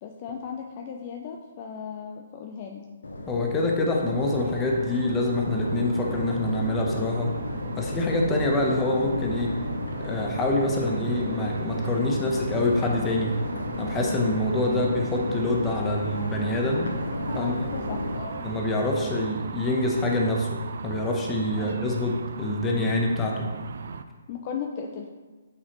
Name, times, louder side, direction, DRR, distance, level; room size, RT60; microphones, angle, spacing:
voice 1, 0.0-2.8 17.4-18.4 21.6-21.7 24.3-25.1, left 6 dB, 35° left, 1 dB, 0.5 m, -36 dB
Crowd, 3.0-18.2, left 2 dB, 75° left, 0.8 m, -34 dB
voice 2, 3.3-7.3 7.7-9.5 10.0-13.4 13.8-16.9 17.3-17.7 18.4-23.5, left 2 dB, 15° left, 0 dB, 0.9 m, -26 dB
sound 1, 4.2-24.0, right 5 dB, 60° right, 0.3 m, -37 dB
8.5 x 4.0 x 3.0 m, 1.3 s
figure-of-eight pair, 135°, 0 cm